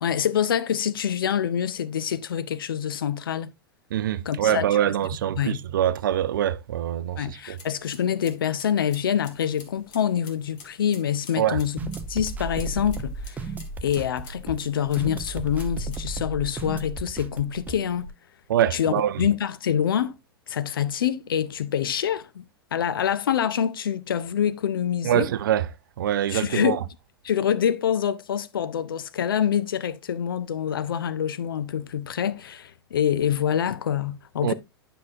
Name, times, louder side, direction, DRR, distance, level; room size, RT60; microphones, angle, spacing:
voice 1, 0.0-3.5 4.2-4.9 5.4-5.6 7.2-11.8 12.1-13.5 13.8-18.1 18.7-20.2 20.5-22.4 22.7-25.3 26.3-26.8 27.2-34.5, left 9 dB, 65° left, 0.6 m, -26 dB
voice 2, 3.9-7.6 11.4-11.6 18.5-19.2 25.0-25.7 26.0-26.8 34.4-34.5, right 11 dB, 60° right, 0.5 m, -24 dB
sound 1, 7.4-16.1, left 5 dB, 50° left, 1.8 m, -50 dB
sound 2, 11.8-18.1, right 3 dB, 15° right, 0.6 m, -34 dB
9.5 x 5.6 x 2.5 m
figure-of-eight pair, 95°, 12 cm